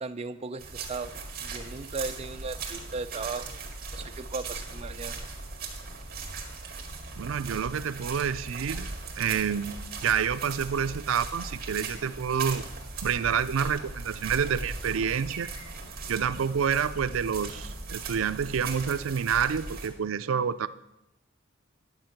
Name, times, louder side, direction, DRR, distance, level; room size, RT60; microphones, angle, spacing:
voice 1, 0.0-1.1 1.4-3.6 3.9-5.2, right 3 dB, 30° right, 8 dB, 0.5 m, -36 dB
sound 1, 0.6-19.9, right 3 dB, 50° right, 1.9 m, -39 dB
voice 2, 7.2-12.6 13.0-15.5 16.1-20.7, right 7 dB, 85° right, 13 dB, 0.4 m, -28 dB
10.5 x 8.1 x 5.8 m, 0.90 s
head